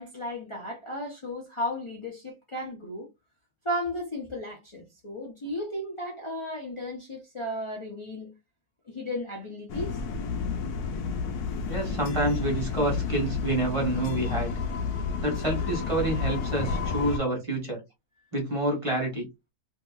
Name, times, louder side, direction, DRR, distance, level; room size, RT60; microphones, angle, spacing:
voice 1, 0.0-3.1 3.6-8.3 8.9-10.0, left 1 dB, 45° left, 0.4 m, -34 dB
sound 1, 9.7-17.2, left 5 dB, 75° left, 1.1 m, -30 dB
voice 2, 11.7-14.6 15.2-17.8 18.3-19.3, right 1 dB, 20° right, 1.1 m, -28 dB
2.9 x 2.7 x 2.3 m
omnidirectional pair, 1.7 m